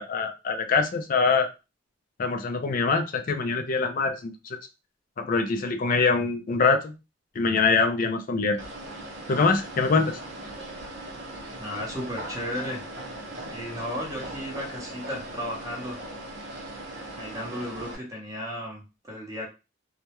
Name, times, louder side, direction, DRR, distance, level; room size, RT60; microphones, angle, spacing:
voice 1, 0.0-1.5 2.2-4.6 5.2-7.0 7.3-8.6 9.3-10.2, left 4 dB, 45° left, 6 dB, 0.4 m, -24 dB
sound 1, 8.6-17.9, right 1 dB, 65° right, 0.7 m, -39 dB
voice 2, 11.6-12.8 13.5-16.0 17.2-19.5, equal, 20° right, -3 dB, 0.7 m, -34 dB
2.2 x 2.0 x 2.9 m, 0.28 s
head